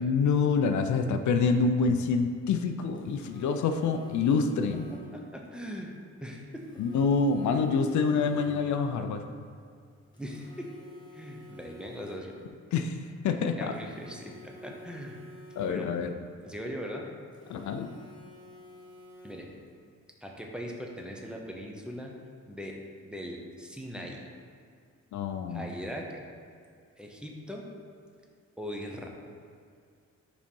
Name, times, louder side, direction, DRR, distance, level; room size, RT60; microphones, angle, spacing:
voice 1, 0.0-4.9 6.8-9.2 12.7-13.7 15.6-16.2 17.5-17.9 25.1-25.7, left 5 dB, 75° left, 7 dB, 0.5 m, -27 dB
Telephone, 2.9-5.3 6.5-8.9 10.1-12.5 13.7-16.1 17.3-19.7, left 2 dB, 15° left, 1.1 m, -51 dB
voice 2, 4.9-6.8 10.2-10.7 11.1-12.3 13.6-15.2 15.7-15.9 16.4-17.1 19.2-19.5 20.2-22.1 22.5-24.2 25.5-26.2 27.0-27.6 28.6-29.1, equal, 5° right, 0 dB, 0.6 m, -40 dB
5.2 x 4.1 x 5.3 m, 2.2 s
cardioid pair, 140°, 29 cm